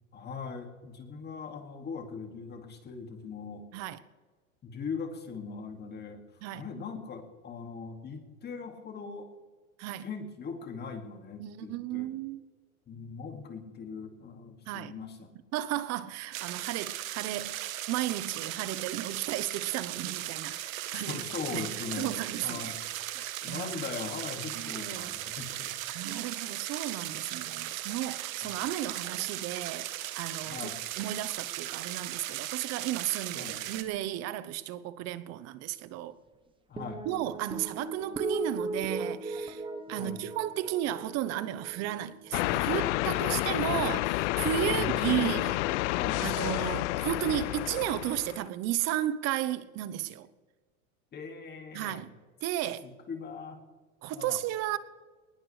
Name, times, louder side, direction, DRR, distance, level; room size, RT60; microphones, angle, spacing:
voice 1, 0.1-3.6 4.6-6.2 6.5-9.3 10.0-12.1 12.9-15.3 20.9-22.8 23.4-25.7 28.4-28.5 30.5-30.8 33.3-33.6 36.7-37.0 40.0-40.2 44.7-45.5 45.9-46.2 51.1-52.0 52.8-53.6 54.1-54.4, left 5 dB, 25° left, 2.3 m, -40 dB
voice 2, 11.4-12.4 14.7-14.9 15.5-22.8 23.1-23.7 24.5-25.1 25.9-30.7 31.0-36.1 37.0-39.6 39.9-45.6 46.2-50.3 51.7-52.1 52.4-52.9 54.0-54.8, right 13 dB, 40° right, 1.0 m, -34 dB
sound 1, 16.3-33.8, right 14 dB, 70° right, 1.3 m, -37 dB
sound 2, 36.8-43.3, right 2 dB, 10° right, 1.2 m, -39 dB
sound 3, 42.3-48.5, left 19 dB, 60° left, 0.5 m, -30 dB
20.5 x 20.0 x 3.3 m
supercardioid pair, 130°, 42 cm